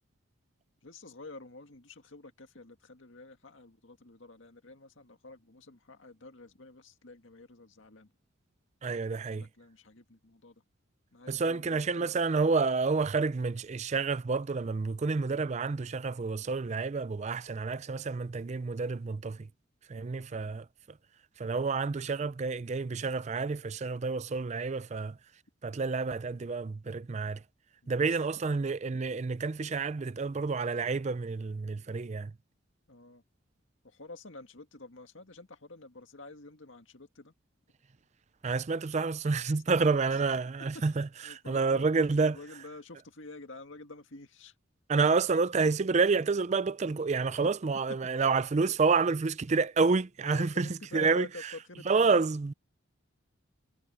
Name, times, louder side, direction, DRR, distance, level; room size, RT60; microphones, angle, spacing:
voice 1, 0.8-8.1 9.3-10.6 11.1-12.1 12.4-12.5 20.1-20.6 27.8-28.4 32.9-33.2 33.8-37.3 39.7-40.2 40.6-40.8 41.2-44.5 47.4-47.5 50.2-52.1, left 2 dB, 65° left, 2.0 m, -49 dB
voice 2, 8.8-9.5 11.3-19.5 19.9-20.7 21.4-25.2 25.6-27.4 27.9-32.3 38.4-42.4 44.9-51.3 51.9-52.5, right 4 dB, 35° right, 0.4 m, -29 dB
head